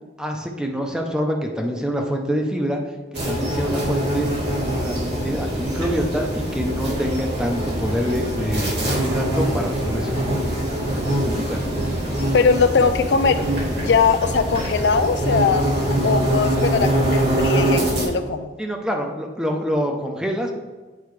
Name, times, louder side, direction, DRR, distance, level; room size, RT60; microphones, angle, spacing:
voice 1, 0.2-2.8 3.1-4.3 4.7-10.4 10.8-11.9 18.6-20.5, equal, 5° right, 2 dB, 0.6 m, -26 dB
sound 1, 3.1-18.0, right 1 dB, 75° right, 2.3 m, -23 dB
voice 2, 12.3-13.4 13.8-15.7 16.0-18.5, left 5 dB, 75° left, 10 dB, 0.4 m, -20 dB
8.7 x 4.6 x 3.2 m, 1.3 s
head